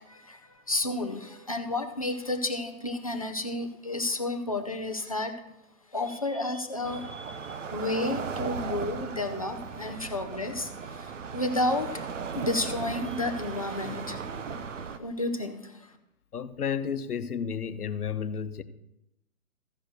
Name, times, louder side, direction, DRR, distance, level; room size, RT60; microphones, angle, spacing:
voice 1, 0.1-5.3 5.9-12.1 12.3-14.2 15.0-15.9, left 2 dB, 25° left, 0.6 m, -31 dB
sound 1, 6.8-15.0, right 5 dB, 55° right, 0.9 m, -37 dB
voice 2, 16.3-18.6, left 7 dB, 80° left, 1.0 m, -32 dB
14.5 x 5.1 x 6.4 m
hypercardioid pair, 165°, 44 cm